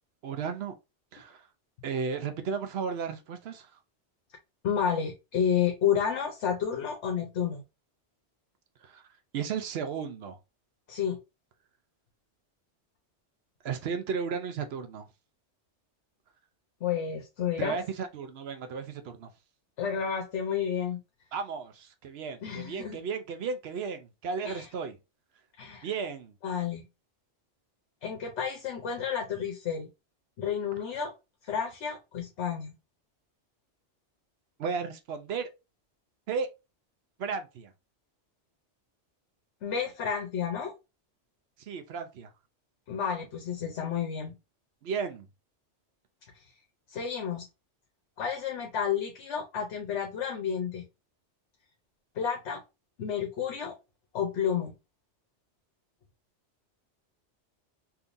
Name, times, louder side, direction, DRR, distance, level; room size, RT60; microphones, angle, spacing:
voice 1, 0.2-0.8 1.1-1.4 1.8-3.7 8.8-9.0 9.3-10.4 13.6-15.1 17.6-19.3 21.3-25.0 25.8-26.3 34.6-35.5 36.3-36.5 37.2-37.7 41.7-42.3 44.8-45.3, right 5 dB, 65° right, 0.8 m, -34 dB
voice 2, 4.6-7.6 10.9-11.2 16.8-17.8 19.8-21.0 22.4-23.0 24.4-24.7 25.6-25.9 26.4-26.9 28.0-29.9 30.4-31.1 31.4-32.7 39.6-40.7 42.9-44.3 46.3-46.4 46.9-47.4 48.2-50.8 52.1-52.6 53.0-53.7 54.1-54.7, left 7 dB, 70° left, 1.0 m, -31 dB
3.5 x 2.8 x 2.5 m
omnidirectional pair, 1.2 m